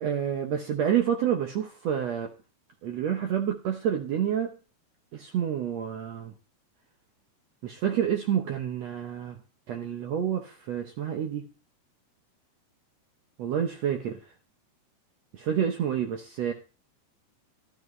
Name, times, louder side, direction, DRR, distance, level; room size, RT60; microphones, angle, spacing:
voice 1, 0.0-2.3 2.8-4.5 5.1-6.3 7.6-9.4 9.7-11.4 13.4-14.2 15.3-16.5, right 9 dB, 90° right, 3 dB, 1.4 m, -28 dB
14.0 x 12.5 x 3.2 m, 0.35 s
omnidirectional pair, 4.5 m